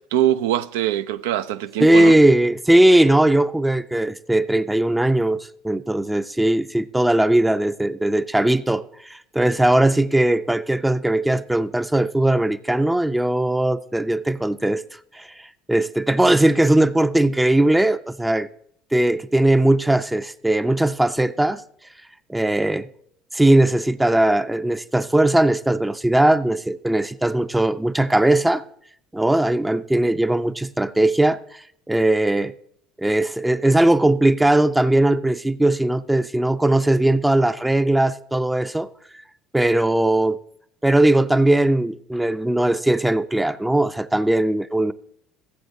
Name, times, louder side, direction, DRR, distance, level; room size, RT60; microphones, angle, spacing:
voice 1, 0.0-2.2, right 12 dB, 80° right, 0.4 m, -23 dB
voice 2, 1.8-14.8 15.1-15.3 15.7-18.5 18.9-21.6 22.3-22.9 23.3-28.6 29.1-32.5 33.0-38.9 39.5-40.4 40.8-44.9, right 1 dB, 10° right, 0.5 m, -19 dB
16.5 x 7.8 x 2.7 m
hypercardioid pair, 75°, 0 cm